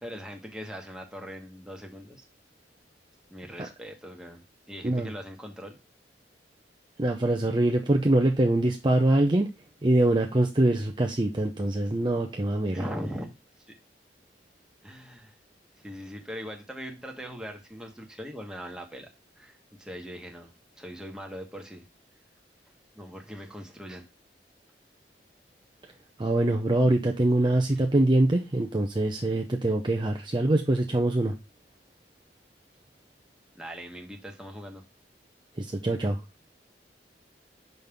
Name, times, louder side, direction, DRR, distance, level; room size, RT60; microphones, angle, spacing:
voice 1, 0.0-2.3 3.3-5.8 12.7-13.3 14.8-15.4 15.8-19.1 19.4-21.8 23.0-24.0 27.7-27.8 33.5-34.8, equal, 5° right, 2 dB, 1.4 m, -40 dB
voice 2, 7.0-9.5 9.8-12.8 26.2-31.3 35.6-36.2, right 1 dB, 25° right, 3 dB, 0.7 m, -24 dB
6.2 x 5.3 x 3.5 m, 0.25 s
head